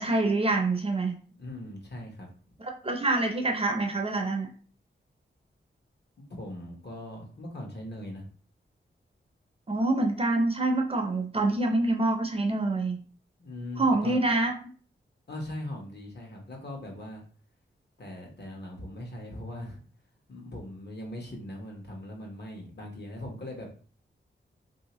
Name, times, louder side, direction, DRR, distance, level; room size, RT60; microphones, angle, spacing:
voice 1, 0.0-1.2 2.6-4.5 9.7-13.0 13.8-14.5, right 2 dB, 30° right, 2 dB, 0.6 m, -26 dB
voice 2, 1.3-2.3 6.3-8.3 13.4-14.2 15.3-17.2 18.0-19.8 20.3-23.7, left 1 dB, 60° left, 0 dB, 1.1 m, -40 dB
3.2 x 2.7 x 3.0 m, 0.41 s
wide cardioid pair, 105°, 20 cm